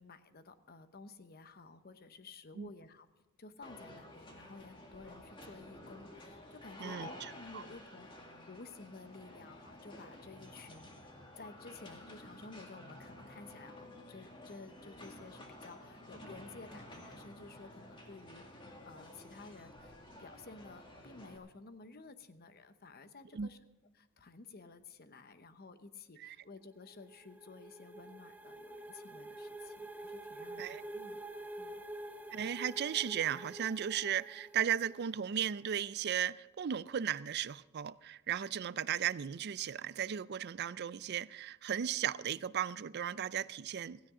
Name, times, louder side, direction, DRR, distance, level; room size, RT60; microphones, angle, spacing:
voice 1, 0.0-3.1 3.4-8.1 8.5-11.1 11.4-18.4 18.9-23.6 23.9-31.3 31.6-31.8, left 3 dB, 50° left, 0.9 m, -53 dB
sound 1, 3.6-21.4, left 1 dB, 25° left, 2.1 m, -52 dB
voice 2, 6.8-7.6 23.3-23.5 26.2-26.4 30.6-30.8 32.3-44.0, right 9 dB, 50° right, 0.4 m, -36 dB
sound 2, 26.7-35.3, right 1 dB, 10° right, 0.9 m, -48 dB
16.0 x 16.0 x 3.7 m
head